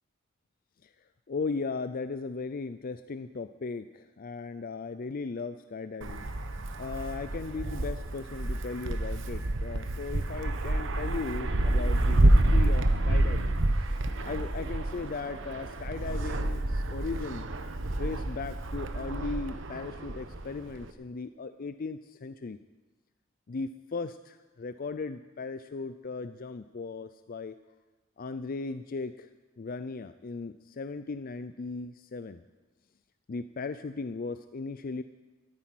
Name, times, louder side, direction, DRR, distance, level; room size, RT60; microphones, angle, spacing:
voice 1, 1.3-6.3 6.8-13.5 14.2-17.5 18.0-22.6 23.5-27.5 28.2-29.3 29.6-32.4 33.3-35.0, left 4 dB, 45° left, 11 dB, 0.5 m, -37 dB
Wind, 6.0-20.9, right 1 dB, 70° right, 1.1 m, -28 dB
13.5 x 10.5 x 9.1 m, 1.2 s
head